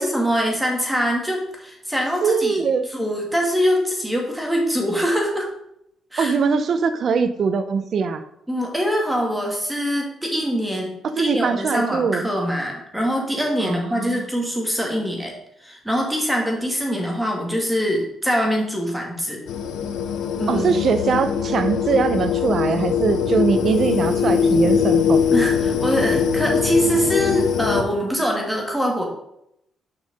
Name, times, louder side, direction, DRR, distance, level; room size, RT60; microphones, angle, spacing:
voice 1, 0.0-5.5 6.1-6.4 8.5-15.3 15.6-19.4 20.4-20.7 25.3-29.1, equal, 5° right, 0 dB, 2.5 m, -23 dB
voice 2, 2.2-2.9 6.2-8.2 11.2-12.3 13.6-14.2 20.5-25.2, right 5 dB, 55° right, 10 dB, 0.8 m, -21 dB
sound 1, 19.5-27.8, left 7 dB, 80° left, 0.8 m, -21 dB
6.9 x 5.6 x 5.4 m, 0.76 s
cardioid pair, 90°, 0 cm